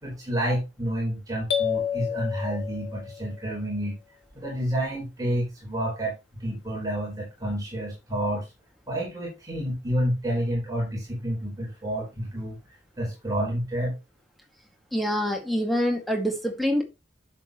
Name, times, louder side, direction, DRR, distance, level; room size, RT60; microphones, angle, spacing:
voice 1, 0.0-4.0 4.3-8.5 8.9-12.6 13.0-13.9, equal, 20° right, -2 dB, 4.0 m, -29 dB
sound 1, 1.5-3.4, left 8 dB, 70° left, 2.2 m, -29 dB
voice 2, 14.9-16.8, equal, ahead, 2 dB, 2.0 m, -25 dB
10.5 x 7.4 x 3.0 m, 0.24 s
head